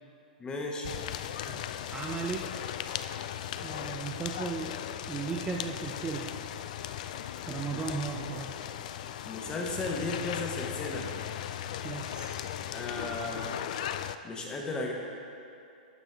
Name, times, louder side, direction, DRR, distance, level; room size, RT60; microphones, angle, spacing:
voice 1, 0.4-0.9 7.7-7.8 9.2-11.1 12.7-13.6 14.2-14.9, left 2 dB, 20° left, 0 dB, 1.2 m, -35 dB
sound 1, 0.8-14.2, left 10 dB, 55° left, 0.3 m, -37 dB
voice 2, 1.9-2.5 3.6-4.8 5.1-6.3 7.4-8.5 11.8-12.5, right 5 dB, 15° right, 0 dB, 0.5 m, -36 dB
12.0 x 5.2 x 3.5 m, 2.7 s
hypercardioid pair, 120°, 5 cm